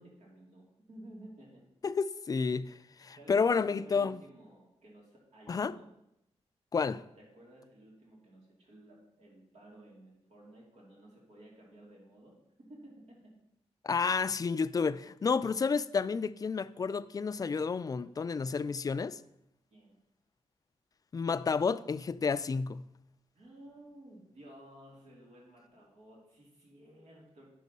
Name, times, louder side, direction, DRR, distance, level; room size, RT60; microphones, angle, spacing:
voice 1, 0.0-1.6 3.1-5.9 7.2-13.4 19.7-20.0 23.3-27.5, right 1 dB, 85° right, 2.7 m, -54 dB
voice 2, 1.8-4.2 5.5-5.7 6.7-7.0 13.8-19.2 21.1-22.8, left 5 dB, 35° left, 0.3 m, -30 dB
9.3 x 6.2 x 5.3 m
wide cardioid pair, 130°, 11 cm